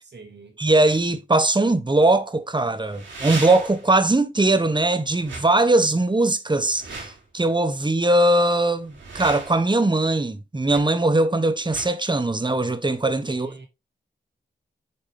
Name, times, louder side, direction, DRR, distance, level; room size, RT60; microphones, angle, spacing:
voice 1, 0.0-0.6 13.3-13.7, right 3 dB, 65° right, 2.9 m, -44 dB
voice 2, 0.6-13.5, right 2 dB, 25° right, 1.3 m, -20 dB
sound 1, 0.9-1.0 2.8-3.9 5.2-5.5 6.6-7.2 8.8-9.7 10.7-10.8 11.6-11.9, right 3 dB, 85° right, 4.6 m, -36 dB
8.8 x 5.1 x 3.4 m
cardioid pair, 50°, 19 cm